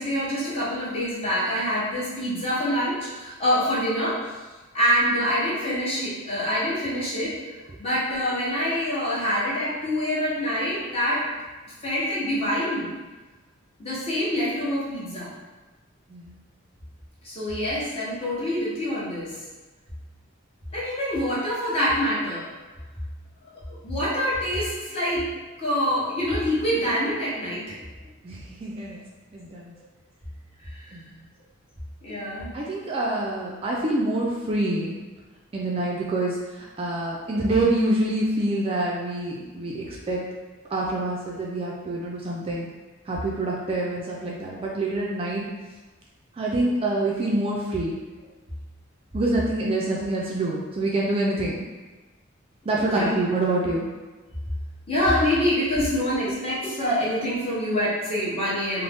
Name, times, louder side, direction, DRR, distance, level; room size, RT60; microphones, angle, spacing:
voice 1, 0.0-4.2 4.7-7.3 7.8-11.2 11.8-12.9 13.8-15.3 17.2-19.3 20.7-22.4 23.8-25.3 25.6-27.8 32.0-32.6 52.8-53.1 54.9-58.8, equal, 30° left, -8 dB, 0.9 m, -25 dB
voice 2, 28.2-29.0 29.3-29.7 30.9-31.2 32.5-35.0 35.5-40.2 40.7-42.7 43.1-45.5 46.4-47.9 49.1-51.6 52.7-53.9, right 2 dB, 30° right, -3 dB, 0.3 m, -26 dB
2.6 x 2.0 x 3.4 m, 1.3 s
head